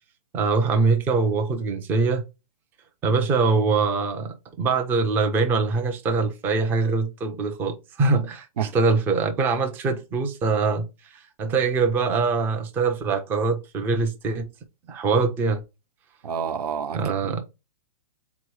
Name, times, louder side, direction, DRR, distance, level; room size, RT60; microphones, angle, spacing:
voice 1, 0.3-2.2 3.0-14.5 14.9-15.6 16.9-17.4, right 4 dB, 10° right, 0.4 m, -23 dB
voice 2, 16.2-17.4, right 7 dB, 90° right, 0.7 m, -29 dB
3.9 x 3.0 x 4.6 m
hypercardioid pair, 160°, 19 cm